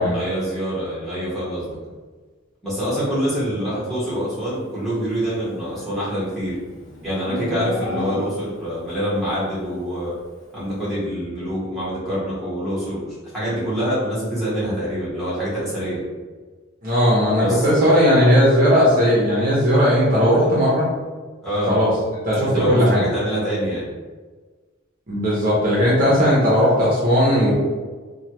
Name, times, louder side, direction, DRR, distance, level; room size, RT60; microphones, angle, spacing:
voice 1, 0.1-1.8 2.6-6.6 7.0-10.2 10.5-16.0 17.4-17.7 21.4-21.7 22.4-23.9, equal, ahead, -10 dB, 1.2 m, -25 dB
Livestock farm animals working animals, 5.4-8.7, left 1 dB, 55° left, 0.9 m, -32 dB
voice 2, 16.8-20.9 21.7-21.9 22.3-23.0 25.1-27.5, equal, 40° right, -7 dB, 0.7 m, -17 dB
3.1 x 2.2 x 2.9 m, 1.4 s
head